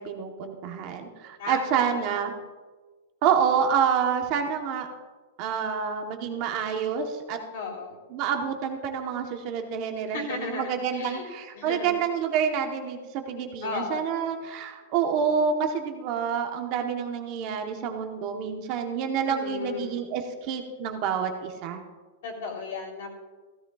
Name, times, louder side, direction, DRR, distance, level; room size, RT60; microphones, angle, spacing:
voice 1, 0.0-2.3 3.2-4.9 5.4-7.4 8.1-21.8, right 7 dB, 35° right, 4 dB, 1.0 m, -28 dB
voice 2, 1.4-1.9 7.5-8.0 10.1-11.3 11.5-11.9 13.6-14.0 19.3-20.0 22.2-23.2, left 4 dB, 55° left, -1 dB, 3.2 m, -35 dB
16.0 x 14.0 x 2.4 m, 1.3 s
supercardioid pair, 175°, 0 cm